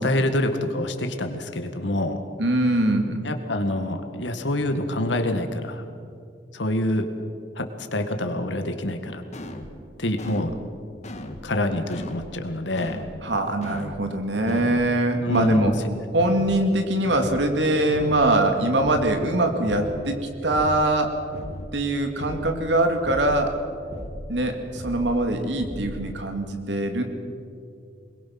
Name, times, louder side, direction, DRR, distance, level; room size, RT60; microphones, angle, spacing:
voice 1, 0.0-2.2 3.2-5.8 6.5-7.1 7.6-9.2 10.0-10.5 11.4-13.0 15.2-15.7, left 1 dB, 85° left, 6 dB, 1.9 m, -26 dB
voice 2, 2.4-3.2 13.2-15.7 16.1-21.1 21.7-23.6 24.3-27.0, right 1 dB, 75° right, 5 dB, 2.4 m, -23 dB
sound 1, 9.3-9.7 10.2-10.6 11.0-11.5 11.9-12.3 12.7-13.2 13.6-14.0 14.5-14.9 15.3-15.7 16.2-16.6 17.0-17.5 17.9-18.3 18.8-19.2 19.6-20.0 20.5-20.9 21.3-21.8 22.2-22.6 23.0-23.5 23.9-24.3 24.8-25.2 25.6-26.1, left 1 dB, 40° left, 1.6 m, -36 dB
22.5 x 21.0 x 6.1 m, 2.4 s
head